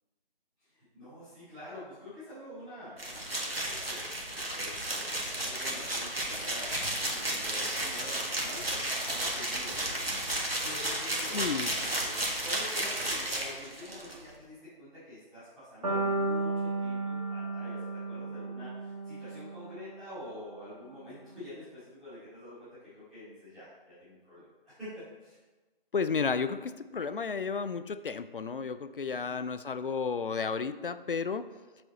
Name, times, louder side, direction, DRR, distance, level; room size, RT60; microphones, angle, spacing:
voice 1, 0.6-6.7 7.1-17.8 18.0-24.4 24.8-25.4, left 1 dB, ahead, -21 dB, 2.2 m, -47 dB
sound 1, 3.0-14.1, right 1 dB, 85° right, 1.8 m, -33 dB
voice 2, 11.3-11.7 25.9-31.5, left 5 dB, 65° left, 13 dB, 0.4 m, -32 dB
sound 2, 15.8-19.9, right 3 dB, 40° right, 1.9 m, -33 dB
7.6 x 5.0 x 4.1 m, 1.2 s
figure-of-eight pair, 155°, 29 cm